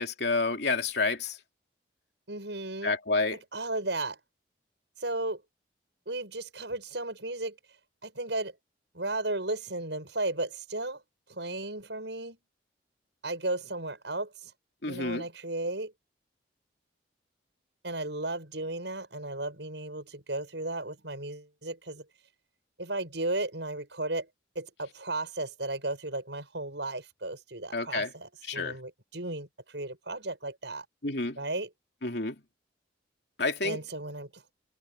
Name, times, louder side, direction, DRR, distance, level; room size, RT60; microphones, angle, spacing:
voice 1, 0.0-1.4 2.8-3.4 14.8-15.2 27.7-28.1 28.5-28.8 31.0-31.4 32.0-32.4 33.4-33.8, left 3 dB, 65° left, 2.8 m, -29 dB
voice 2, 2.3-2.9 3.3-4.2 5.0-5.4 6.1-7.6 8.0-8.5 8.9-11.0 11.3-12.4 13.2-14.5 14.8-15.9 17.8-22.0 22.8-24.3 24.5-30.9 31.4-31.7 33.6-34.4, right 2 dB, 75° right, 6.9 m, -35 dB
head